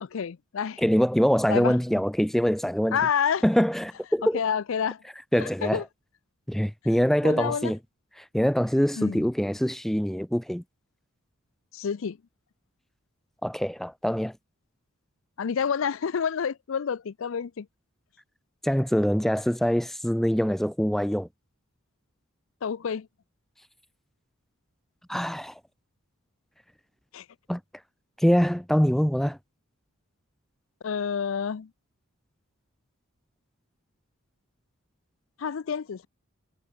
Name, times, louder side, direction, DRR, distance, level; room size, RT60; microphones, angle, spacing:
voice 1, 0.0-0.8 1.5-1.8 2.9-3.4 4.3-5.0 5.3-5.8 7.2-7.7 9.0-9.3 11.7-12.2 15.4-17.7 22.6-23.1 27.1-27.3 30.8-31.7 35.4-36.1, left 7 dB, 65° left, 0.5 m, -28 dB
voice 2, 0.8-3.0 3.4-4.4 5.3-5.8 6.5-7.8 8.3-10.6 13.4-14.3 18.6-21.3 25.1-25.5 27.5-27.6 28.2-29.4, equal, ahead, 0.4 m, -24 dB
head